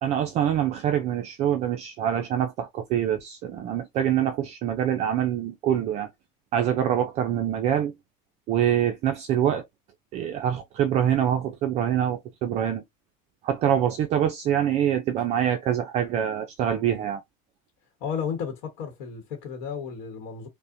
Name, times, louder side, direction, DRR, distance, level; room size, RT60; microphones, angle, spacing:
voice 1, 0.0-6.1 6.5-7.9 8.5-9.7 10.1-12.8 13.4-17.2, right 10 dB, 35° right, 0.4 m, -25 dB
voice 2, 18.0-20.5, left 7 dB, 60° left, 1.0 m, -33 dB
5.3 x 2.1 x 2.5 m
cardioid pair, 170°, 19 cm